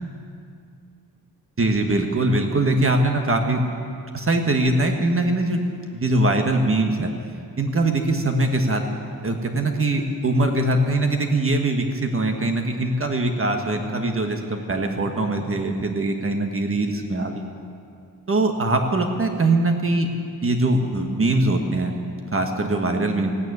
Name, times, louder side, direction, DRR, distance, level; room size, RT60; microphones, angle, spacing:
voice 1, 1.6-3.6 4.1-5.6 5.9-7.1 7.6-8.8 9.2-17.4 18.3-20.1 20.4-21.9 22.3-23.3, right 2 dB, 35° right, 4 dB, 1.4 m, -22 dB
15.5 x 9.4 x 9.7 m, 2.4 s
wide cardioid pair, 130°, 36 cm